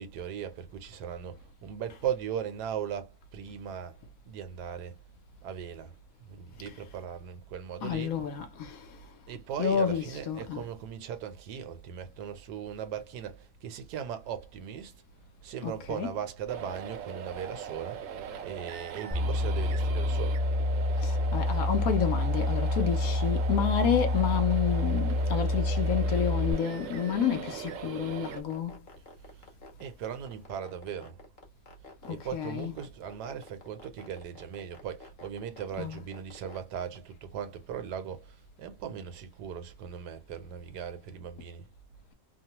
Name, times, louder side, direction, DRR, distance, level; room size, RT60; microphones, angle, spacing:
voice 1, 0.0-4.0 4.2-5.0 5.4-6.0 6.3-8.2 9.3-14.9 15.4-18.0 18.4-20.4 29.3-29.5 29.8-31.2 31.8-41.7, right 8 dB, 80° right, 1.2 m, -38 dB
voice 2, 7.8-9.1 9.6-10.6 15.6-16.1 21.0-28.8 32.0-32.7 35.8-36.0, left 8 dB, 70° left, 0.9 m, -30 dB
sound 1, 16.5-28.4, right 8 dB, 65° right, 0.9 m, -40 dB
sound 2, 19.1-26.5, left 2 dB, ahead, 0.4 m, -28 dB
sound 3, 20.0-37.0, left 3 dB, 40° left, 0.8 m, -50 dB
3.0 x 2.0 x 2.8 m
omnidirectional pair, 1.8 m